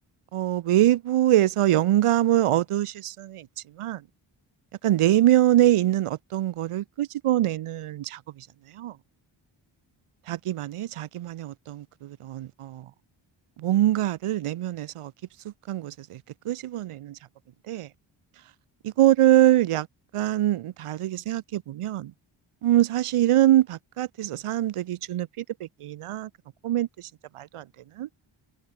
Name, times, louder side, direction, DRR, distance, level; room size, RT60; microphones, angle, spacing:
voice 1, 0.3-3.5 3.8-4.0 4.8-8.5 8.7-9.0 10.3-12.9 13.6-15.1 15.4-17.2 17.7-17.9 18.8-19.9 20.1-22.1 22.6-26.3 26.6-27.6 28.0-28.1, right 13 dB, 90° right, 1.0 m, -24 dB
cardioid pair, 45°, 50 cm